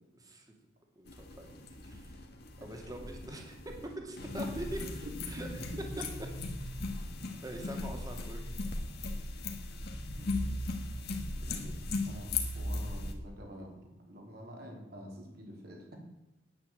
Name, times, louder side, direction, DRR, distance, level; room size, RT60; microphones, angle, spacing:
voice 1, 0.1-0.6 1.0-2.3 2.6-5.5 7.4-8.6, right 1 dB, 20° right, 2 dB, 2.4 m, -44 dB
sound 1, 1.1-13.1, left 2 dB, 55° left, 1.6 m, -38 dB
voice 2, 11.4-11.8 12.1-13.8 14.1-16.0, equal, 55° right, 0 dB, 3.7 m, -47 dB
9.7 x 8.9 x 7.9 m, 0.99 s
head